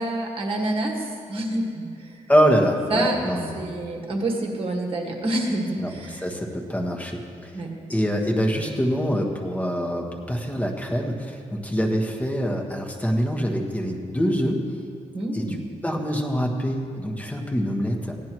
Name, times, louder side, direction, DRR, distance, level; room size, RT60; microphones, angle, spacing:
voice 1, 0.0-2.3 2.9-3.1 3.5-6.2 7.5-7.8 15.1-15.6, right 1 dB, 45° right, 0 dB, 1.7 m, -27 dB
voice 2, 2.3-3.7 5.7-7.6 7.9-14.6 15.3-15.6 15.8-18.2, equal, 10° left, 1 dB, 1.4 m, -25 dB
17.0 x 10.5 x 3.1 m, 2.3 s
cardioid pair, 110°, 13 cm